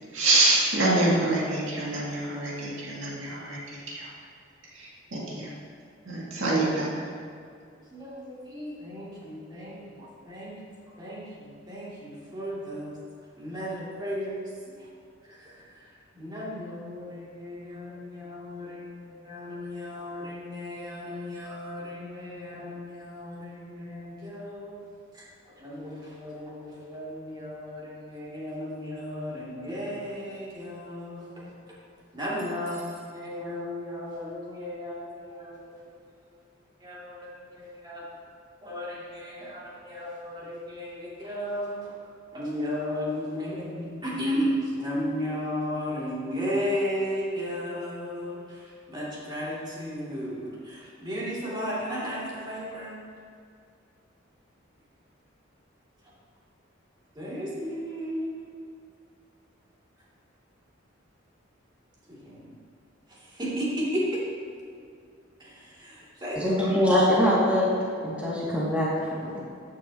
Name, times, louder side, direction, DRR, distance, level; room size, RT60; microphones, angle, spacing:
voice 1, 0.1-4.1 4.7-5.5 6.1-7.0, right 2 dB, 75° right, -5 dB, 2.4 m, -26 dB
voice 2, 7.9-10.5 11.0-13.0 13.4-14.5 15.3-15.8 16.1-24.8 25.1-25.2 25.6-31.8 32.1-35.8 36.8-38.0 38.6-41.9 42.3-53.0 57.1-58.5 62.1-62.5 63.1-64.2 65.4-66.8, equal, 25° right, -7 dB, 2.7 m, -34 dB
voice 3, 66.4-67.7 68.0-69.4, equal, 5° right, -8 dB, 2.3 m, -23 dB
14.0 x 9.3 x 2.9 m, 2.3 s
head